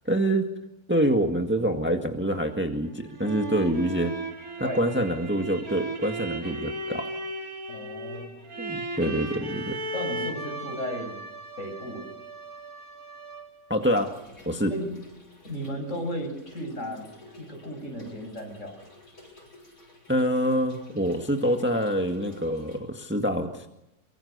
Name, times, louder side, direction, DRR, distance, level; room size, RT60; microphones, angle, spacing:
voice 1, 0.1-0.5 0.9-4.1 4.6-7.0 8.6-9.8 13.7-14.1 14.5-14.7 20.1-23.7, equal, 5° right, 4 dB, 1.8 m, -26 dB
sound 1, 2.9-13.7, right 2 dB, 70° right, 3.0 m, -36 dB
voice 2, 7.7-8.3 9.0-9.1 9.9-11.2 11.6-12.1 14.7-14.9 15.4-17.1 17.4-18.8, equal, 55° left, 4 dB, 7.1 m, -34 dB
Trickle dribble / Fill (with liquid), 13.8-22.8, left 1 dB, 80° left, 7.9 m, -53 dB
24.0 x 24.0 x 6.8 m, 0.89 s
omnidirectional pair, 1.6 m